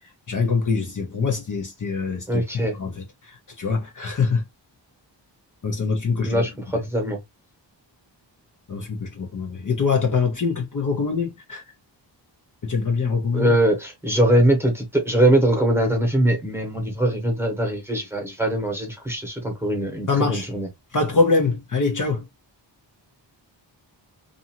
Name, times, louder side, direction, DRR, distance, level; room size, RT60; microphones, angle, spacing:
voice 1, 0.3-2.4 2.8-4.4 5.6-6.4 8.7-11.6 12.6-13.6 20.1-20.5 20.9-22.3, left 4 dB, 45° left, 0.7 m, -24 dB
voice 2, 2.3-2.8 6.2-7.2 13.3-20.7, right 1 dB, 5° right, 1.1 m, -22 dB
2.6 x 2.5 x 2.8 m
wide cardioid pair, 130°, 45 cm